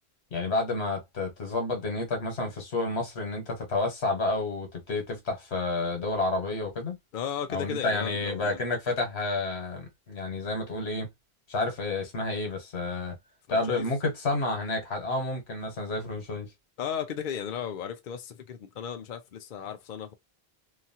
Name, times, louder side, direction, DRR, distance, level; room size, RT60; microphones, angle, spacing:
voice 1, 0.3-7.0 7.5-11.1 11.5-13.2 13.5-16.5, left 2 dB, 85° left, 1.4 m, -30 dB
voice 2, 7.1-8.6 13.5-14.0 16.8-20.1, left 8 dB, 60° left, 0.7 m, -35 dB
2.9 x 2.4 x 2.6 m
omnidirectional pair, 1.1 m